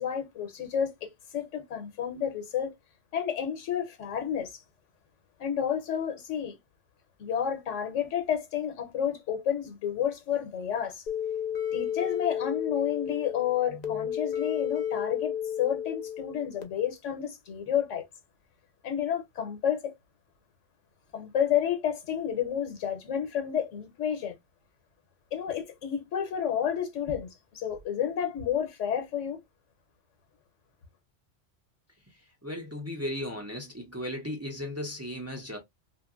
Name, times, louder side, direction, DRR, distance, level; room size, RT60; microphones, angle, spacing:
voice 1, 0.0-2.7 3.1-4.6 5.4-6.6 7.2-11.0 11.7-18.1 18.8-20.0 21.1-24.3 25.3-29.4, left 9 dB, 90° left, 1.1 m, -30 dB
sound 1, 11.1-16.6, left 9 dB, 55° left, 0.5 m, -32 dB
voice 2, 32.4-35.6, left 1 dB, 20° right, 0.4 m, -36 dB
2.8 x 2.5 x 2.3 m
omnidirectional pair, 1.2 m